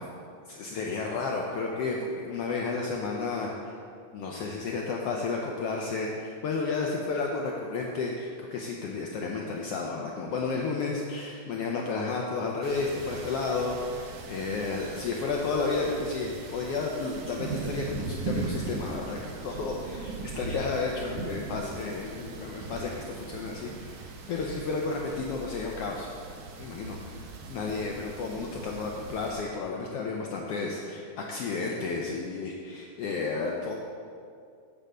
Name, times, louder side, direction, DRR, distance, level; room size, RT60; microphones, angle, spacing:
voice 1, 0.5-3.7 4.1-26.1 26.6-27.2 27.5-33.8, left 4 dB, 85° left, -1 dB, 1.3 m, -32 dB
sound 1, 12.6-29.4, right 4 dB, 80° right, 1.1 m, -39 dB
9.0 x 4.9 x 6.5 m, 2.3 s
omnidirectional pair, 3.5 m